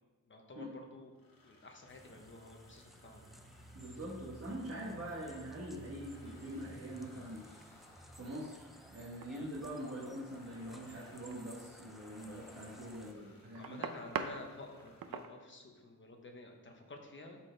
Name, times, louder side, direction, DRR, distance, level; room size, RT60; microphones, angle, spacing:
voice 1, 0.2-1.1 1.4-3.4 9.3-9.5 13.5-17.4, left 2 dB, 35° left, 2 dB, 1.0 m, -51 dB
sound 1, 1.1-15.2, left 2 dB, 75° left, 1.4 m, -63 dB
sound 2, 1.9-13.1, equal, ahead, 0.3 m, -56 dB
voice 2, 3.7-7.8 8.2-13.8, right 1 dB, 45° right, -5 dB, 1.2 m, -44 dB
sound 3, 8.6-8.8 9.2-9.7 11.1-11.7 12.5-14.4 14.7-15.3, right 6 dB, 80° right, 0.6 m, -41 dB
12.5 x 4.4 x 3.3 m, 1.3 s
wide cardioid pair, 180°, 34 cm